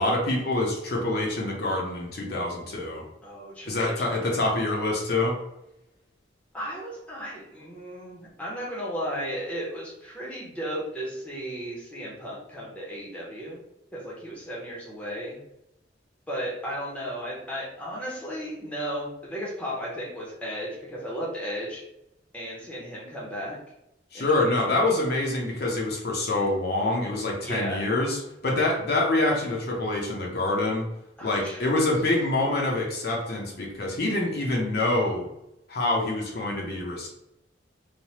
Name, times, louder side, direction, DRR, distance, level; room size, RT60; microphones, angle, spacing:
voice 1, 0.0-3.0 3.7-5.4 24.1-30.9 31.2-35.3 35.7-37.1, left 2 dB, 55° left, -1 dB, 0.6 m, -26 dB
voice 2, 3.2-4.6 6.5-13.6 13.9-15.4 16.3-21.8 22.3-23.6 24.1-25.0 27.4-27.9 31.2-31.9, equal, 5° left, -5 dB, 0.7 m, -35 dB
3.2 x 2.1 x 2.7 m, 0.86 s
head